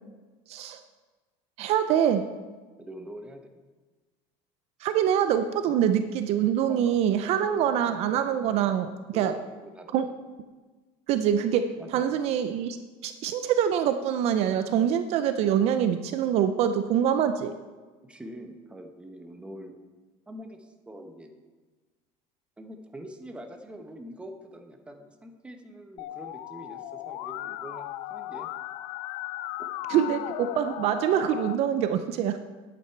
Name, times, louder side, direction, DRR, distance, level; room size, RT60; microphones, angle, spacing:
voice 1, 0.5-0.8 1.6-2.2 4.8-8.9 9.1-9.3 9.9-10.1 11.1-11.6 11.9-12.8 13.0-17.5 29.9-32.4, right 9 dB, 50° right, 9 dB, 0.5 m, -25 dB
voice 2, 2.8-3.6 6.7-7.7 9.1-10.1 11.8-12.3 18.0-19.7 20.3-21.4 22.6-28.5 29.9-30.1 30.4-30.6, equal, 10° right, 4 dB, 0.9 m, -44 dB
Musical instrument, 26.0-31.5, left 15 dB, 60° left, 0.4 m, -37 dB
10.5 x 8.7 x 4.5 m, 1.3 s
cardioid pair, 155°, 14 cm